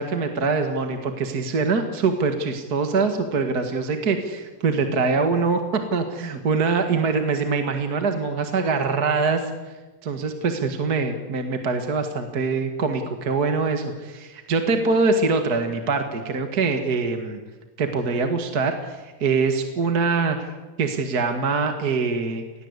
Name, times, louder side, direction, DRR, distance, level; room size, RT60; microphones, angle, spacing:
voice 1, 0.0-9.5 10.0-17.4 17.8-20.5 20.8-22.4, right 4 dB, 35° right, 6 dB, 1.7 m, -24 dB
29.5 x 20.5 x 8.3 m, 1.2 s
omnidirectional pair, 4.1 m